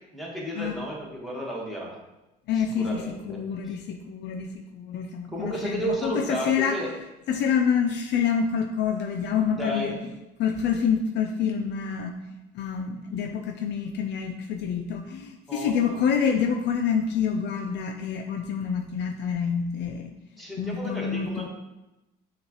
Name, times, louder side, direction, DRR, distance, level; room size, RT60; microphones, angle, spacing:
voice 1, 0.1-2.0 2.6-3.4 5.3-6.9 9.5-10.0 15.5-16.0 20.4-21.5, equal, ahead, -4 dB, 1.4 m, -33 dB
voice 2, 2.5-6.8 7.3-10.0 10.4-12.2 12.5-20.1 20.6-21.5, left 7 dB, 60° left, 5 dB, 0.4 m, -27 dB
6.2 x 2.4 x 3.0 m, 0.98 s
supercardioid pair, 85°, 20 cm